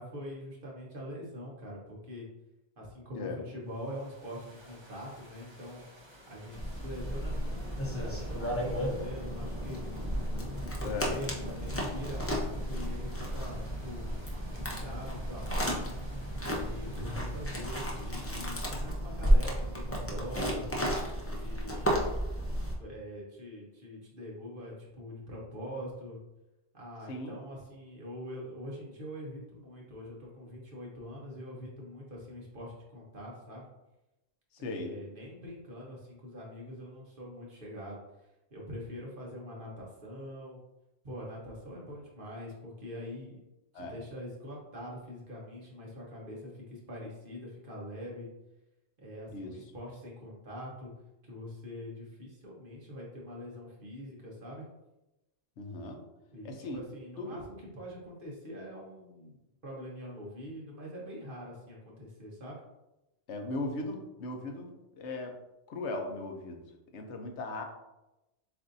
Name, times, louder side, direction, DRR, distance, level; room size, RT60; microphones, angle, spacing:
voice 1, 0.0-2.3 2.8-5.8 6.3-10.4 10.8-14.2 14.5-15.9 16.5-20.7 21.3-22.1 22.8-26.2 26.7-33.7 34.6-38.0 38.5-40.6 41.0-43.4 43.7-48.3 49.0-50.9 51.2-54.7 56.3-59.3 59.6-62.6, equal, 50° right, -3 dB, 1.3 m, -44 dB
sound 1, 3.7-18.4, left 1 dB, 25° right, 0.8 m, -48 dB
sound 2, 6.5-22.8, equal, 15° left, 0.7 m, -33 dB
voice 2, 10.8-11.2 27.1-27.4 34.6-35.0 43.7-44.0 49.3-49.6 55.6-56.0 56.4-56.8 57.2-57.4 63.3-65.3 65.7-66.6 66.9-67.6, left 2 dB, 80° left, 4 dB, 1.0 m, -38 dB
7.4 x 2.7 x 2.6 m, 0.96 s
omnidirectional pair, 1.2 m